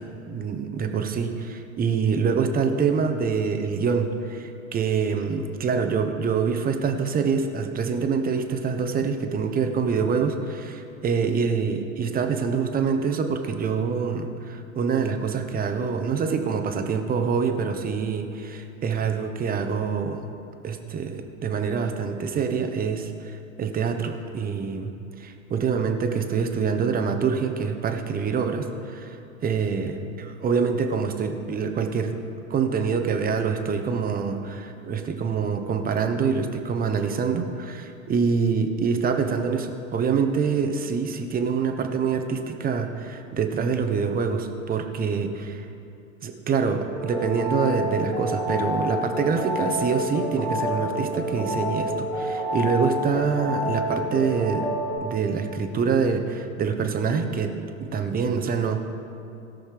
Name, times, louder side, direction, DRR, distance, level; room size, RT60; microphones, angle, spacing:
voice 1, 0.0-20.2 20.6-24.9 25.2-32.2 32.5-45.6 46.2-54.7 55.0-58.8, right 5 dB, 20° right, 5 dB, 1.0 m, -25 dB
sound 1, 46.9-55.0, equal, 10° left, 3.1 m, -28 dB
17.0 x 6.5 x 4.9 m, 2.6 s
hypercardioid pair, 105°, 41 cm